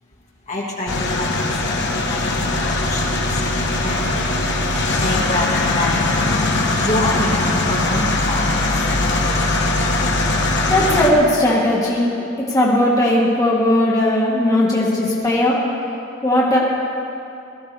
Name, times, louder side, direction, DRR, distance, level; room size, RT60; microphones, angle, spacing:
voice 1, 0.5-4.2 4.6-6.1 6.8-8.9, left 1 dB, 35° left, -3 dB, 1.9 m, -27 dB
sound 1, 0.9-11.1, left 2 dB, 60° left, 1.3 m, -20 dB
voice 2, 10.7-15.6 16.2-16.6, left 1 dB, 15° left, -6 dB, 1.8 m, -17 dB
18.5 x 13.5 x 3.4 m, 2.7 s
head